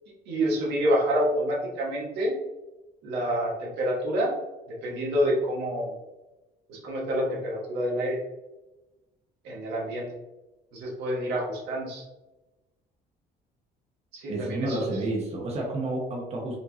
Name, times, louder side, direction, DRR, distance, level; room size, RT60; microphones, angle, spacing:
voice 1, 0.3-2.4 3.0-4.3 4.7-5.9 6.7-8.2 9.4-10.1 10.7-12.0 14.2-14.8, equal, 85° right, -3 dB, 1.4 m, -27 dB
voice 2, 14.3-16.6, right 2 dB, 40° right, -1 dB, 1.1 m, -30 dB
5.1 x 2.8 x 2.7 m, 1.0 s
cardioid pair, 110°, 17 cm